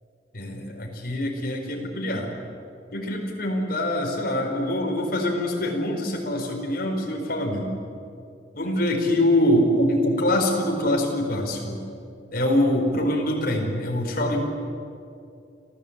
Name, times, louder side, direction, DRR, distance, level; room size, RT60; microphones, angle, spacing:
voice 1, 0.3-2.3 2.9-7.7 8.5-11.8 12.3-14.4, left 1 dB, 55° left, 1 dB, 4.4 m, -24 dB
26.0 x 16.0 x 8.5 m, 2.5 s
head